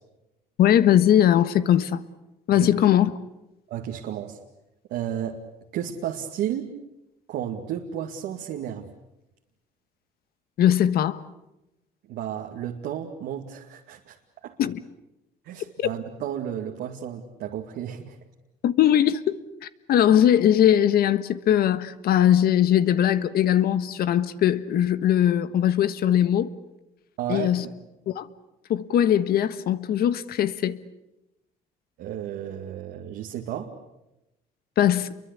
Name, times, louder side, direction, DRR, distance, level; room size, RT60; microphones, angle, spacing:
voice 1, 0.6-2.0 2.5-3.1 10.6-11.2 14.6-14.8 18.6-26.5 27.3-27.6 28.1-28.3 28.7-30.8 34.8-35.1, left 10 dB, 65° left, 1.5 m, -20 dB
voice 2, 3.7-4.4 4.9-5.4 5.7-6.8 7.3-8.9 12.1-14.2 14.4-14.6 15.4-18.2 27.2-27.7 32.0-33.7, right 10 dB, 80° right, 2.3 m, -32 dB
29.0 x 23.0 x 8.4 m
cardioid pair, 110°, 17 cm